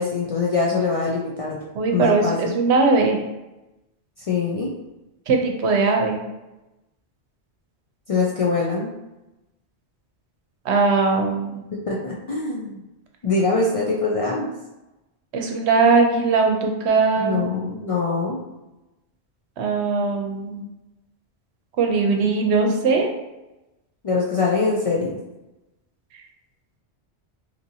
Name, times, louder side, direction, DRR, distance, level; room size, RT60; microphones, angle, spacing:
voice 1, 0.0-1.6 1.9-2.5 4.3-4.7 8.1-8.9 11.7-12.8 13.2-14.5 17.2-18.4 24.0-25.2, left 4 dB, 55° left, -4 dB, 0.3 m, -23 dB
voice 2, 1.8-3.2 5.3-6.2 10.7-11.6 15.3-17.5 19.6-20.6 21.8-23.1, right 4 dB, 80° right, 2 dB, 0.9 m, -20 dB
2.9 x 2.6 x 2.6 m, 0.99 s
omnidirectional pair, 1.1 m